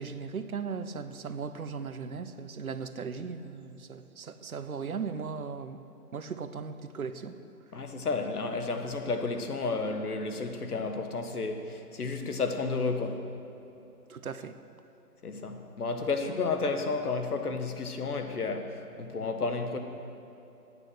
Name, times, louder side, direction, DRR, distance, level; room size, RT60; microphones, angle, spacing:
voice 1, 0.0-5.8 6.1-7.4 14.1-14.5, right 5 dB, 65° right, 11 dB, 0.8 m, -37 dB
voice 2, 7.7-13.2 15.2-19.8, left 4 dB, 70° left, 6 dB, 1.4 m, -32 dB
10.0 x 9.0 x 8.0 m, 2.9 s
hypercardioid pair, 180°, 48 cm